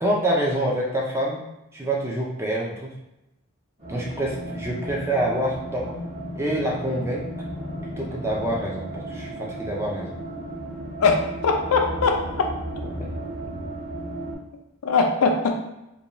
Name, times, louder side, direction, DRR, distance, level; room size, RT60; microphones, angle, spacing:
voice 1, 0.0-1.4 1.7-2.9 3.9-6.0 6.3-7.3 8.0-10.1 13.0-13.1, right 1 dB, 10° right, -3 dB, 0.4 m, -26 dB
sound 1, 3.8-14.4, right 1 dB, 30° right, 1.1 m, -34 dB
voice 2, 11.0-12.4 14.8-15.6, left 4 dB, 85° left, 3 dB, 0.4 m, -21 dB
2.5 x 2.2 x 2.9 m, 0.89 s
head